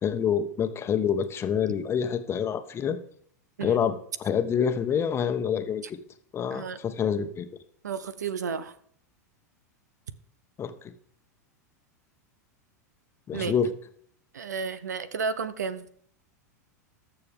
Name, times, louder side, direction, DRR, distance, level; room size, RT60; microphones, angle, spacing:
voice 1, 0.0-3.0 3.6-3.9 4.2-6.0 6.3-7.5 10.6-10.7 13.3-13.7, left 7 dB, 30° left, 8 dB, 1.1 m, -27 dB
voice 2, 7.8-8.7 13.3-13.5 14.3-15.9, right 5 dB, 80° right, 16 dB, 0.8 m, -32 dB
20.5 x 6.9 x 3.6 m, 0.63 s
hypercardioid pair, 90°, 9 cm